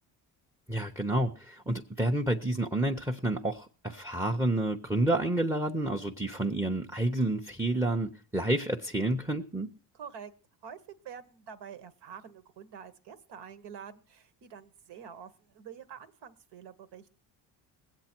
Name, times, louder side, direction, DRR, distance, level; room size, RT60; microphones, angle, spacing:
voice 1, 0.7-9.7, right 1 dB, 5° right, 5 dB, 0.8 m, -29 dB
voice 2, 9.9-10.3 10.6-17.1, right 7 dB, 65° right, 11 dB, 1.4 m, -47 dB
20.0 x 8.2 x 4.5 m, 0.38 s
cardioid pair, 90°, 44 cm